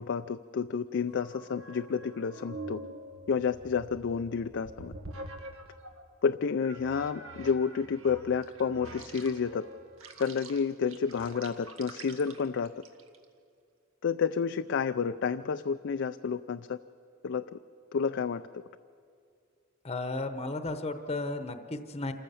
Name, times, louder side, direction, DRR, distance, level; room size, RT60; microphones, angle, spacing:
voice 1, 0.0-2.8 3.3-4.9 6.2-9.7 10.2-12.7 14.0-16.8 17.2-17.4 17.9-18.6, left 6 dB, 60° left, 10 dB, 0.4 m, -30 dB
sound 1, 1.1-6.0 6.6-13.2, right 2 dB, 80° right, 1.6 m, -46 dB
voice 2, 19.8-22.1, left 2 dB, 30° left, 8 dB, 0.9 m, -34 dB
27.5 x 15.0 x 7.0 m, 2.3 s
head